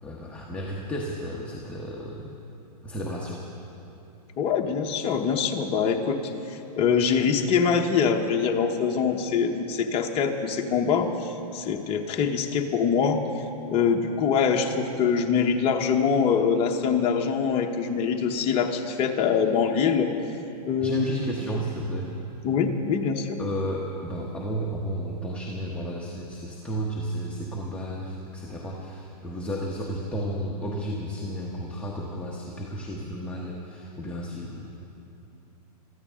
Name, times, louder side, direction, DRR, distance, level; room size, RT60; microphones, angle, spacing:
voice 1, 0.0-2.3 2.8-3.4 20.8-22.2 23.4-34.8, equal, 5° left, -3 dB, 1.1 m, -33 dB
voice 2, 4.4-6.2 6.5-13.2 13.7-20.1 20.7-21.1 22.4-23.4, left 6 dB, 25° left, 2 dB, 1.0 m, -24 dB
23.5 x 14.0 x 3.7 m, 2.9 s
hypercardioid pair, 140°, 21 cm